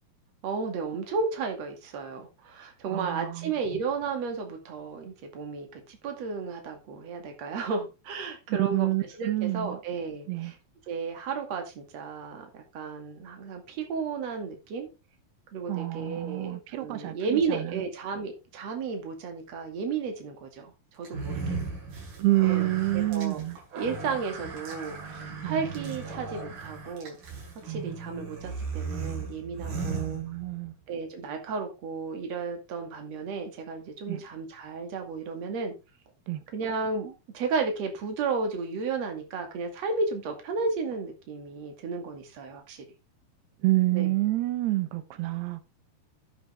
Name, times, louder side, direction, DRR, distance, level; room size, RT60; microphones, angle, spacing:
voice 1, 0.4-10.6 10.9-14.9 15.5-21.6 22.4-23.4 23.7-27.2 27.6-30.2 30.9-35.7 36.5-42.8 43.9-44.1, right 4 dB, 45° right, 3.1 m, -33 dB
voice 2, 2.9-3.5 8.5-9.8 10.3-10.5 15.7-17.8 22.2-23.6 25.4-25.6 27.7-28.0 29.9-30.7 34.1-34.2 36.3-36.4 43.6-45.6, right 18 dB, 90° right, 3.1 m, -28 dB
sound 1, 21.0-30.7, right 4 dB, 65° right, 6.1 m, -37 dB
10.5 x 8.1 x 3.4 m
omnidirectional pair, 4.6 m